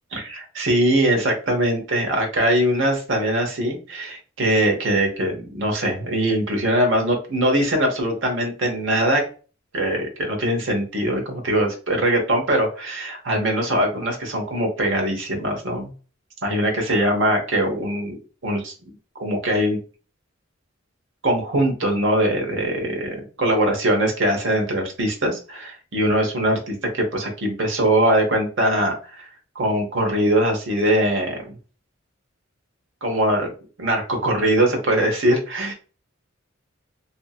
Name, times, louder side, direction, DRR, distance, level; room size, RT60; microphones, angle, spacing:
voice 1, 0.1-9.2 9.7-15.9 16.4-18.2 18.4-18.9 19.2-19.8 21.2-29.3 29.5-31.6 33.0-33.5 33.8-35.7, right 1 dB, 65° right, 2 dB, 1.0 m, -22 dB
2.7 x 2.7 x 2.4 m, 0.37 s
head